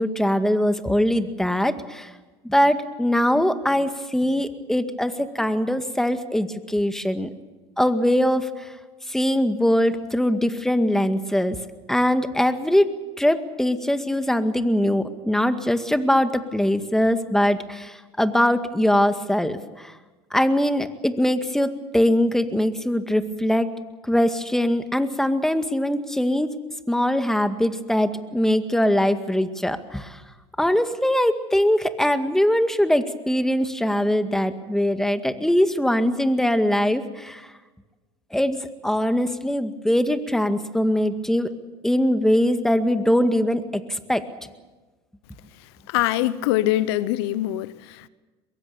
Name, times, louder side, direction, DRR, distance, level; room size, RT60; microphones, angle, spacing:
voice 1, 0.0-2.1 2.4-7.3 7.8-8.7 9.1-11.6 11.9-19.9 20.3-23.7 24.0-26.5 26.9-30.2 30.6-37.5 38.3-41.5 41.8-44.3, equal, 5° left, 2.0 m, -22 dB
voice 2, 45.9-48.1, left 15 dB, 80° left, 0.9 m, -23 dB
23.0 x 22.5 x 7.0 m
hypercardioid pair, 80°, 13 cm